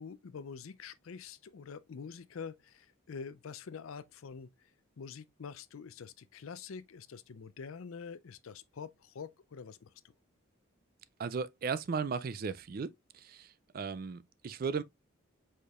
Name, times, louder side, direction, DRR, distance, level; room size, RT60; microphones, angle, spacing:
voice 1, 0.0-4.5 5.0-9.9, left 6 dB, 80° left, 0.5 m, -46 dB
voice 2, 11.2-13.5 13.7-14.8, right 5 dB, 45° right, 0.3 m, -36 dB
4.9 x 4.3 x 2.4 m
head